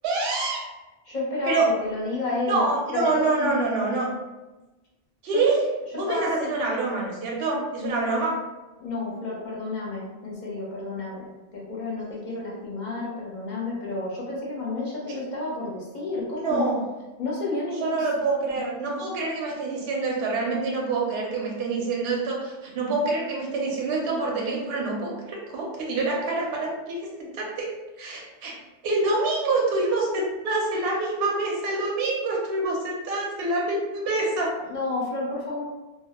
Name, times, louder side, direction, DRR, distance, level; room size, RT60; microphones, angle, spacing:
voice 1, 0.0-0.7 1.5-1.7 2.5-4.1 5.2-5.6 5.9-8.4 16.4-16.8 17.8-28.6 28.8-34.5, right 3 dB, 65° right, -2 dB, 0.7 m, -26 dB
voice 2, 1.0-2.6 2.9-3.6 5.2-5.5 5.9-6.5 7.8-8.1 8.8-16.7 17.2-18.1 18.5-18.6 34.7-35.6, left 2 dB, 45° left, -4 dB, 0.7 m, -31 dB
2.2 x 2.0 x 2.8 m, 1.1 s
omnidirectional pair, 1.2 m